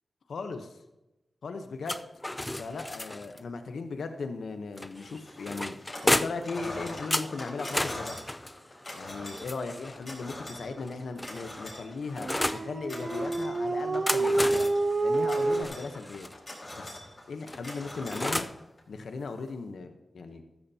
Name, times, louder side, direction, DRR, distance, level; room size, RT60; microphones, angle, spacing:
voice 1, 0.3-0.8 1.4-2.0 2.6-8.2 8.9-14.7 15.0-16.3 16.8-17.0 17.3-18.5 18.9-20.4, left 4 dB, 90° left, 7 dB, 0.9 m, -37 dB
sound 1, 1.8-3.4 4.8-6.5 7.1-10.0 10.8-12.7 13.8-16.3 17.5-18.6, left 1 dB, 15° left, 0.4 m, -33 dB
sound 2, 5.3-6.1 6.4-18.8, left 1 dB, 35° left, 4.5 m, -43 dB
Dog, 12.2-15.6, right 2 dB, 40° right, 0.6 m, -28 dB
14.0 x 13.5 x 2.8 m, 0.98 s
wide cardioid pair, 85°, 0 cm